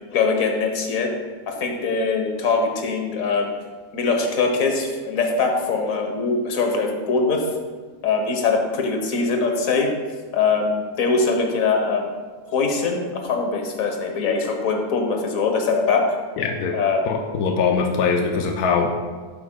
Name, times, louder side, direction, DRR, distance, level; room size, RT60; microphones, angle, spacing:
voice 1, 0.1-1.1 1.5-3.5 3.9-7.4 8.0-9.9 10.3-12.1 12.5-16.0 16.7-17.1, left 4 dB, 65° left, 3 dB, 1.5 m, -22 dB
voice 2, 16.4-16.8 17.1-18.9, left 5 dB, 90° left, 3 dB, 1.2 m, -22 dB
11.5 x 8.4 x 2.2 m, 1.5 s
omnidirectional pair, 1.6 m